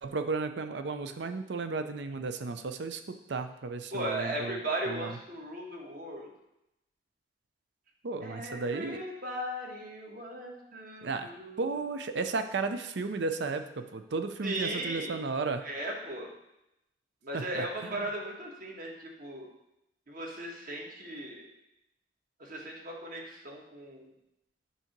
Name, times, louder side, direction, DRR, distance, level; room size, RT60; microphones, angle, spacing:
voice 1, 0.0-4.6 4.9-5.1 8.0-9.0 11.0-11.3 11.6-15.6 17.3-18.0, right 4 dB, 70° right, 8 dB, 0.5 m, -34 dB
voice 2, 3.9-6.3 8.2-11.6 14.4-15.2 15.6-16.3 17.2-19.5 20.1-21.5 22.4-24.1, right 1 dB, 50° right, -1 dB, 1.4 m, -37 dB
8.3 x 2.8 x 5.9 m, 0.87 s
head